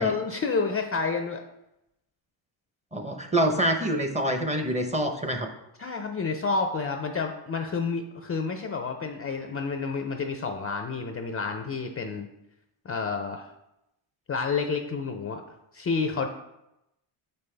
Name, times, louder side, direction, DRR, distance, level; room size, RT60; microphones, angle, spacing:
voice 1, 0.0-1.4 5.8-12.3 12.8-13.5 14.3-15.4 15.7-16.3, left 4 dB, 30° left, 5 dB, 0.5 m, -29 dB
voice 2, 2.9-5.5, right 1 dB, 15° right, 5 dB, 0.8 m, -26 dB
6.7 x 5.5 x 3.3 m, 0.86 s
cardioid pair, 100°, 50 cm